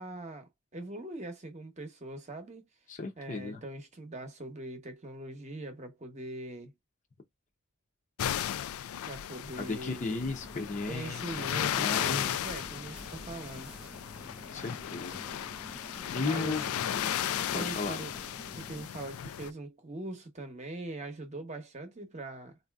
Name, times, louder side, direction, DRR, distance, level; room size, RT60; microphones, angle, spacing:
voice 1, 0.0-2.7 3.2-6.7 9.0-10.2 10.9-13.7 16.2-16.7 17.5-18.1 18.5-22.6, right 2 dB, 30° right, 0.8 m, -42 dB
voice 2, 2.9-3.6 9.6-11.5 11.8-12.2 14.5-15.2 16.1-16.9 17.5-18.0, left 3 dB, 35° left, 0.6 m, -35 dB
sound 1, 8.2-19.5, left 10 dB, 90° left, 0.4 m, -35 dB
sound 2, 9.9-18.9, equal, 5° right, 0.4 m, -49 dB
4.1 x 2.6 x 2.3 m
head